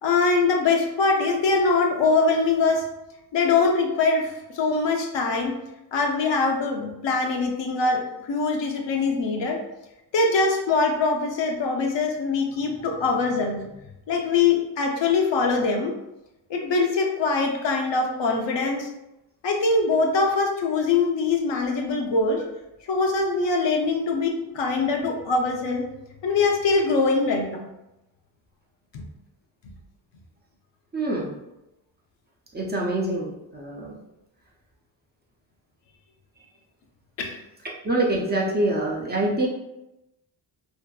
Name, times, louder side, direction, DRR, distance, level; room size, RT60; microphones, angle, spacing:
voice 1, 0.0-2.9 3.3-5.6 5.9-9.6 10.1-13.7 14.1-15.9 16.5-18.9 19.4-22.4 22.9-25.9 26.2-27.7 28.9-29.0 37.2-37.4, left 4 dB, 80° left, 2 dB, 0.6 m, -23 dB
voice 2, 30.9-31.4 32.5-33.9 37.8-39.5, right 1 dB, 25° right, -2 dB, 0.5 m, -25 dB
2.6 x 2.5 x 2.2 m, 0.92 s
cardioid pair, 95°, 44 cm